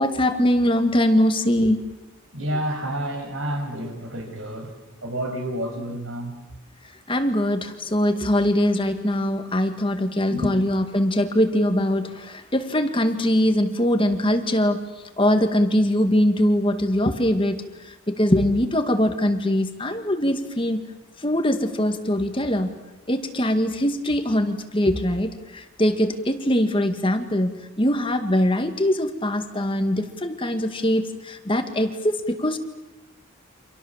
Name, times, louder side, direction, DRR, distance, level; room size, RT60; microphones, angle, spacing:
voice 1, 0.0-1.8 7.1-14.8 15.2-20.8 21.2-22.7 23.1-27.5 27.8-32.6, left 1 dB, 25° left, 7 dB, 2.0 m, -22 dB
voice 2, 2.3-4.7 5.0-6.4 10.3-10.5, equal, 65° right, 5 dB, 6.2 m, -29 dB
30.0 x 27.0 x 7.5 m, 1.0 s
head